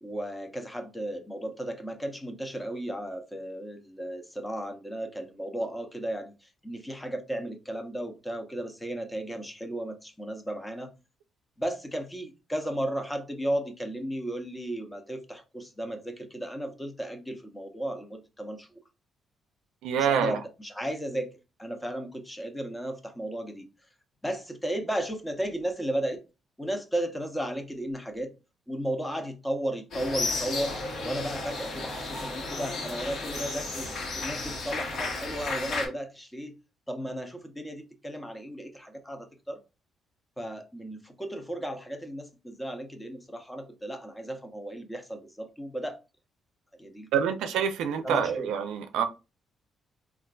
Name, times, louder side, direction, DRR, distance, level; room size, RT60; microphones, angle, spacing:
voice 1, 0.0-10.9 11.6-18.7 20.0-23.7 24.2-26.2 26.6-28.3 28.7-33.9 34.2-36.6 36.9-39.6 40.4-46.0 46.8-47.1 48.0-48.5, right 1 dB, 10° left, 0.6 m, -34 dB
voice 2, 19.8-20.4 47.1-49.0, right 7 dB, 90° right, 0.4 m, -26 dB
sound 1, 29.9-35.9, left 3 dB, 65° left, 1.1 m, -33 dB
3.7 x 2.4 x 2.3 m
cardioid pair, 90°, 0 cm